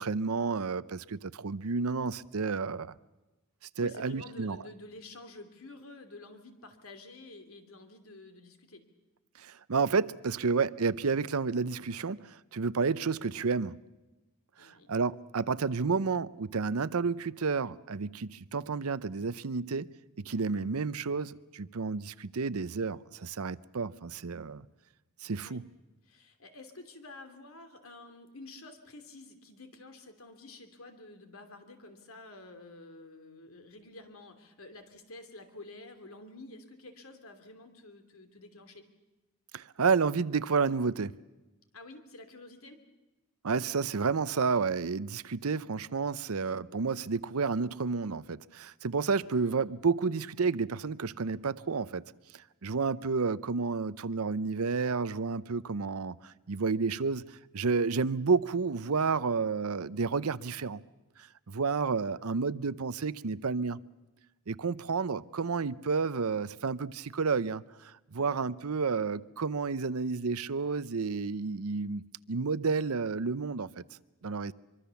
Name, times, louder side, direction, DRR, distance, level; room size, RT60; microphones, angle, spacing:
voice 1, 0.0-2.9 3.8-4.6 9.4-13.7 14.6-19.9 20.2-24.6 25.2-25.7 39.5-41.1 43.4-52.0 52.6-60.8 61.2-63.8 64.5-72.0 72.3-73.8 74.2-74.5, right 4 dB, 80° right, 0.7 m, -31 dB
voice 2, 3.8-8.8 14.6-14.9 25.4-25.6 26.0-38.9 41.7-42.8 49.4-49.6 68.2-68.4, left 2 dB, 70° left, 2.9 m, -50 dB
24.0 x 24.0 x 7.1 m
head